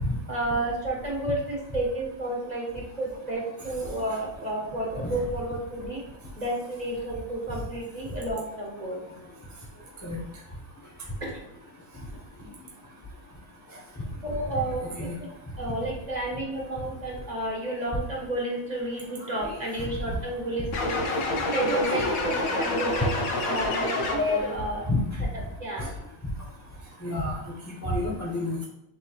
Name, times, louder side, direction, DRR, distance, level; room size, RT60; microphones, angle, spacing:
voice 1, 0.3-6.0 6.4-9.0 11.2-11.3 14.2-15.3 15.6-21.0 21.5-23.1 23.4-24.8 25.3-25.9, right 1 dB, 40° right, -2 dB, 0.8 m, -31 dB
sound 1, 20.7-24.5, left 2 dB, 75° left, 1.1 m, -28 dB
voice 2, 21.7-22.1 24.1-25.0 25.8-25.9 27.0-27.4 27.7-28.7, left 2 dB, 25° left, -3 dB, 0.3 m, -29 dB
6.3 x 3.1 x 2.3 m, 0.86 s
omnidirectional pair, 1.5 m